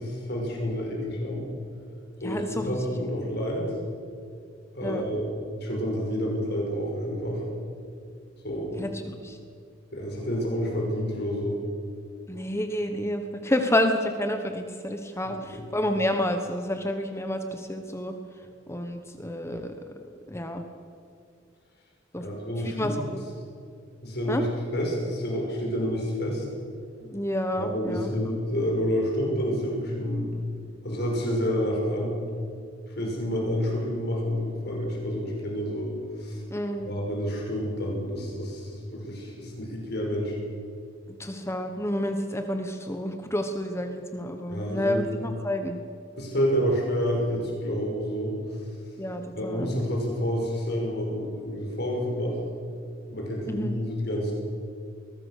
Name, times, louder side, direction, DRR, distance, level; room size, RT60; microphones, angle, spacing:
voice 1, 0.0-1.5 2.2-3.6 4.7-5.3 5.6-7.4 8.4-8.8 9.9-11.6 15.2-15.6 22.2-23.1 24.0-26.4 27.6-30.3 30.8-32.2 33.0-36.4 36.8-40.4 44.5-45.0 46.2-48.3 49.3-52.4 53.1-54.3, equal, 60° left, -1 dB, 5.8 m, -29 dB
voice 2, 2.2-2.8 4.8-5.0 8.8-9.4 12.3-18.1 18.7-19.9 20.3-20.6 22.1-22.2 22.6-23.2 24.3-24.4 27.0-28.1 36.5-36.9 41.1-45.8 49.0-49.7 53.5-53.8, left 1 dB, 15° left, 6 dB, 1.2 m, -29 dB
22.0 x 19.5 x 6.7 m, 2.3 s
head